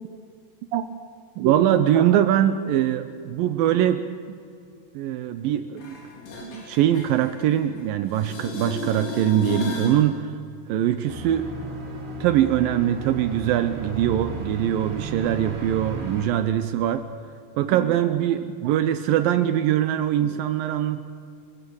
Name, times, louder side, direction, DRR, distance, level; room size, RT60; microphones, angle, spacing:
voice 1, 1.4-4.1 4.9-6.0 6.4-10.3 10.7-11.5 12.2-17.0 17.6-21.0, right 11 dB, 85° right, 10 dB, 2.0 m, -22 dB
sound 1, 5.8-7.8 8.1-10.0 15.8-15.9, left 4 dB, 70° left, 5.9 m, -34 dB
sound 2, 11.1-16.3, right 2 dB, 50° right, 4.0 m, -34 dB
26.0 x 16.0 x 7.1 m, 2.3 s
omnidirectional pair, 5.1 m